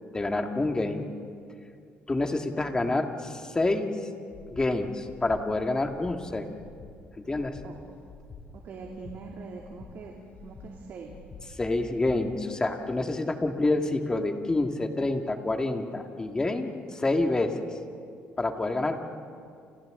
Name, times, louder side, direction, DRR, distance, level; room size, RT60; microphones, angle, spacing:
voice 1, 0.1-1.1 2.1-3.9 4.5-6.5 7.2-7.6 11.6-17.5 18.4-19.0, left 2 dB, 20° left, 4 dB, 2.0 m, -27 dB
Breathing, 4.3-4.7 5.0-5.4 5.8-6.2 6.5-6.9 7.3-7.7 8.1-8.4 8.8-9.2 9.6-9.9 10.3-10.7 11.1-11.4 11.8-12.2, left 6 dB, 50° left, 2.9 m, -47 dB
voice 2, 8.5-10.1 10.4-11.1, right 4 dB, 60° right, -1 dB, 2.6 m, -42 dB
29.5 x 29.0 x 3.8 m, 2.3 s
cardioid pair, 110°, 4 cm